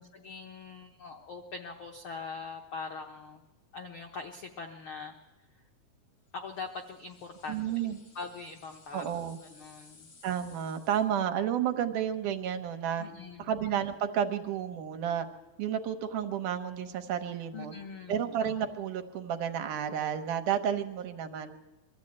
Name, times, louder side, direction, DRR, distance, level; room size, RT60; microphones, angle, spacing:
voice 1, 0.1-3.4 3.7-5.2 6.3-10.1 13.0-13.5 17.5-18.3, left 4 dB, 90° left, 4 dB, 1.1 m, -42 dB
sound 1, 6.5-11.3, left 4 dB, 65° left, 4.9 m, -59 dB
voice 2, 7.5-8.0 8.9-9.4 10.2-13.0 13.4-15.3 15.6-17.7 18.1-21.5, right 9 dB, 70° right, 7 dB, 2.5 m, -31 dB
22.5 x 13.5 x 8.7 m, 1.1 s
omnidirectional pair, 3.8 m